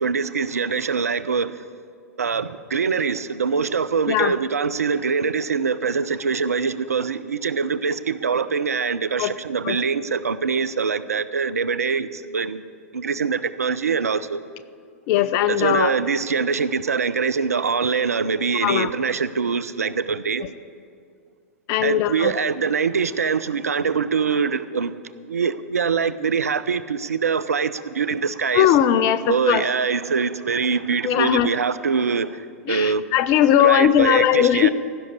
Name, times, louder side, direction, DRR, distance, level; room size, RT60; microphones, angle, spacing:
voice 1, 0.0-1.6 2.2-12.6 12.9-14.4 15.5-20.4 21.8-24.9 25.3-28.8 29.3-33.0 33.6-34.7, right 5 dB, 75° right, 15 dB, 0.5 m, -23 dB
voice 2, 15.1-15.9 18.6-18.9 21.7-22.3 28.5-29.6 31.0-31.5 32.7-34.7, left 11 dB, 40° left, 14 dB, 0.6 m, -19 dB
16.0 x 6.4 x 8.7 m, 2.2 s
figure-of-eight pair, 100°, 8 cm